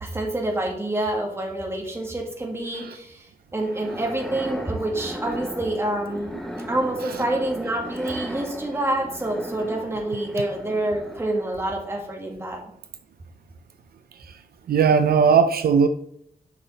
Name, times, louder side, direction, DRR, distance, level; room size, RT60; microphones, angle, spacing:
voice 1, 0.0-3.3 3.5-6.4 6.7-12.6, right 1 dB, 15° right, 1.8 m, -27 dB
sound 1, 3.6-11.7, equal, ahead, 1.0 m, -36 dB
voice 2, 14.7-15.9, right 6 dB, 70° right, 0.5 m, -17 dB
10.0 x 5.7 x 4.0 m
wide cardioid pair, 170°, 16 cm